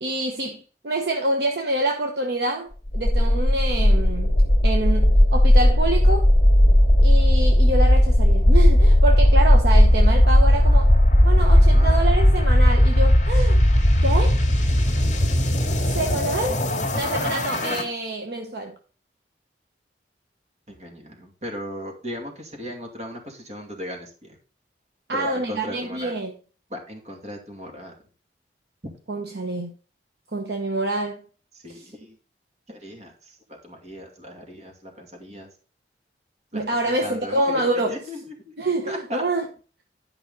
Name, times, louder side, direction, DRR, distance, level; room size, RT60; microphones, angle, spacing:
voice 1, 0.0-4.3 4.6-6.3 7.0-10.9 11.2-13.6 14.0-14.4 15.9-16.6 16.9-18.7 25.1-26.3 29.1-29.7 30.3-31.2 31.7-31.8 36.5-38.0 38.6-39.5, right 2 dB, 60° right, 1.0 m, -26 dB
sound 1, 2.9-17.8, left 1 dB, 40° left, 2.0 m, -16 dB
voice 2, 11.3-12.0 20.7-24.1 25.1-26.1 26.7-27.9 31.5-32.2 32.7-35.5 36.5-38.5 38.9-39.2, equal, 40° right, 2.5 m, -37 dB
11.0 x 5.5 x 3.9 m
head